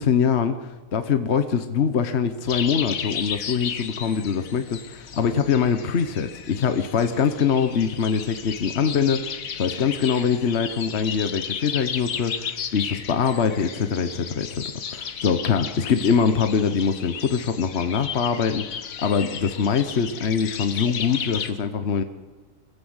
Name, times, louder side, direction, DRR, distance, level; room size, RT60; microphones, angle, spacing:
voice 1, 0.0-14.6 14.9-22.0, left 6 dB, 55° left, 9 dB, 1.3 m, -23 dB
sound 1, 2.5-21.5, left 7 dB, 75° left, 1.5 m, -34 dB
25.5 x 15.5 x 8.1 m, 1.3 s
omnidirectional pair, 1.5 m